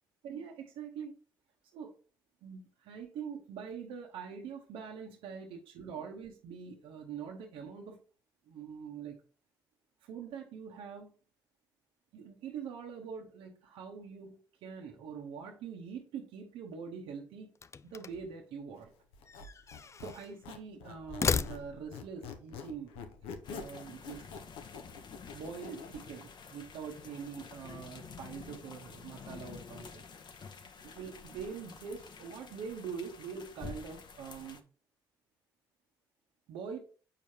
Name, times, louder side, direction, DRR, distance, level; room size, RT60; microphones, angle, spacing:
voice 1, 0.2-1.2 1.7-2.0 2.4-8.0 8.5-9.2 10.0-11.1 12.1-17.5 17.8-18.9 19.6-23.0 23.5-24.2 25.3-30.0 30.8-34.6 36.5-36.8, right 6 dB, 80° right, 0 dB, 1.0 m, -44 dB
sound 1, 17.5-18.4 19.3-20.3 21.0-22.0, left 5 dB, 30° left, 0.3 m, -35 dB
Squeak, 19.1-21.7 21.9-26.0, left 6 dB, 85° left, 0.7 m, -46 dB
sound 2, 23.4-34.6, left 5 dB, 55° left, 0.8 m, -49 dB
6.9 x 4.8 x 2.8 m, 0.39 s
supercardioid pair, 60°, 9 cm